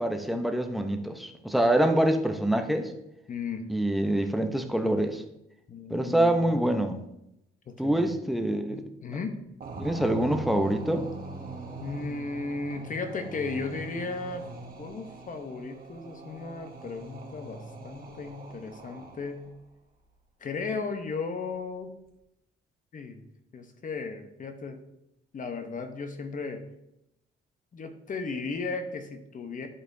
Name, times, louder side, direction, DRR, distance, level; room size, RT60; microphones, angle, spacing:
voice 1, 0.0-2.9 3.7-5.2 5.9-7.0 7.8-8.9 9.8-11.1, right 1 dB, ahead, 5 dB, 0.7 m, -25 dB
voice 2, 3.3-3.6 5.7-6.8 7.7-8.1 8.7-9.4 11.8-14.4 14.8-19.5 20.4-21.9 22.9-23.2 23.5-24.8 25.3-26.6 27.7-29.7, left 4 dB, 40° left, 7 dB, 0.9 m, -35 dB
sound 1, 9.6-19.5, right 3 dB, 45° right, 1.4 m, -42 dB
11.0 x 4.1 x 2.7 m, 0.84 s
cardioid pair, 90°, 20 cm